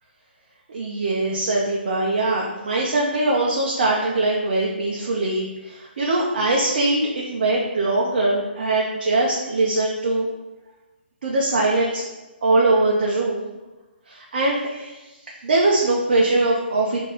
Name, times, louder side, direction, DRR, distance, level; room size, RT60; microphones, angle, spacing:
voice 1, 0.7-10.3 11.2-12.0 12.4-13.5 14.1-15.0 15.4-17.0, right 2 dB, 50° right, -3 dB, 0.7 m, -22 dB
4.5 x 2.8 x 3.9 m, 1.1 s
figure-of-eight pair, 130°, 6 cm